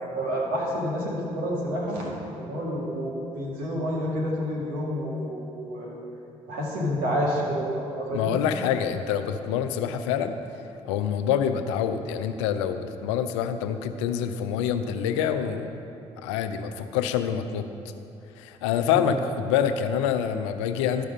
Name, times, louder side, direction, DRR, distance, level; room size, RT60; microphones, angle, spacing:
voice 1, 0.0-5.9 6.5-8.4 18.9-19.2, equal, 75° right, -4 dB, 2.0 m, -29 dB
voice 2, 8.1-10.4 10.9-15.8 16.2-17.7 18.4-21.0, left 8 dB, 85° left, 9 dB, 0.4 m, -26 dB
12.0 x 4.9 x 5.4 m, 2.8 s
hypercardioid pair, 50°, 15 cm